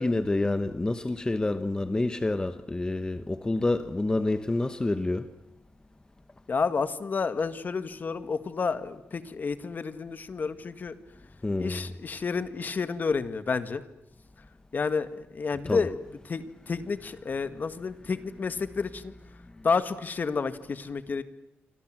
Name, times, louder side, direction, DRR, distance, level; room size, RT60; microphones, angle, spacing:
voice 1, 0.0-5.3 11.4-11.9 15.7-15.9, left 2 dB, 20° left, 1.0 m, -28 dB
voice 2, 6.5-10.9 11.6-13.8 14.7-16.0 16.3-19.1 19.6-21.2, left 5 dB, 45° left, 1.8 m, -30 dB
28.5 x 25.5 x 7.7 m
cardioid pair, 100°, 4 cm